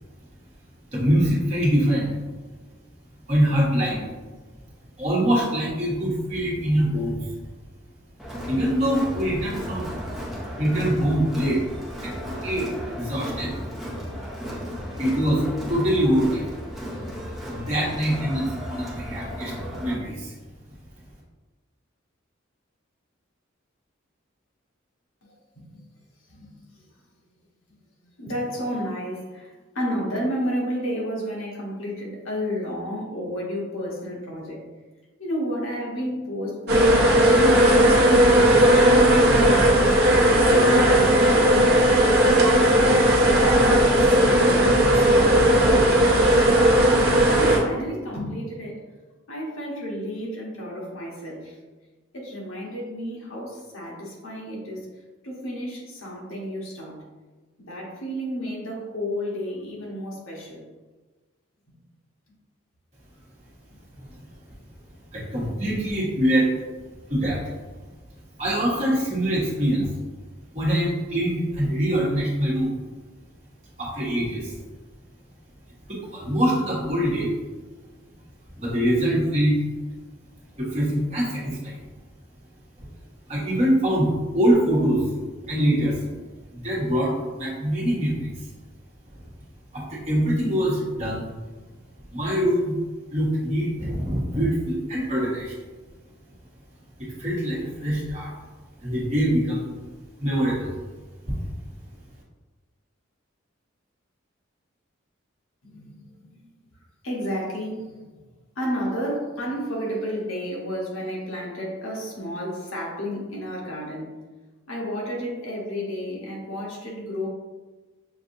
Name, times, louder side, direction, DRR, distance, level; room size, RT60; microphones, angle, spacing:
voice 1, 0.9-2.1 3.3-4.0 5.0-7.3 8.4-9.9 10.6-11.6 12.0-12.7 12.9-13.5 15.0-16.4 17.5-19.5 19.8-20.3 64.0-64.2 65.1-66.5 67.1-67.4 68.4-69.9 70.5-72.8 73.8-74.5 75.9-77.3 78.6-79.6 80.6-81.8 83.3-85.1 85.4-86.0 86.5-88.5 89.7-91.3 92.1-92.7 93.1-95.5 97.0-98.3 98.8-99.7 100.2-100.7 101.3-101.4, equal, 35° right, -6 dB, 1.3 m, -24 dB
Crowd, 8.2-19.9, equal, ahead, 0.6 m, -35 dB
voice 2, 25.2-25.8 26.3-26.6 28.0-34.6 35.2-41.5 42.0-42.9 43.3-46.8 47.3-48.8 49.3-51.6 52.1-54.9 55.2-57.0 57.6-60.6 105.6-106.3 107.0-108.1 108.5-114.1 114.7-117.3, equal, 80° left, -3 dB, 1.2 m, -32 dB
sound 1, 36.7-47.6, right 1 dB, 50° right, 0.8 m, -17 dB
6.4 x 2.6 x 2.6 m, 1.3 s
head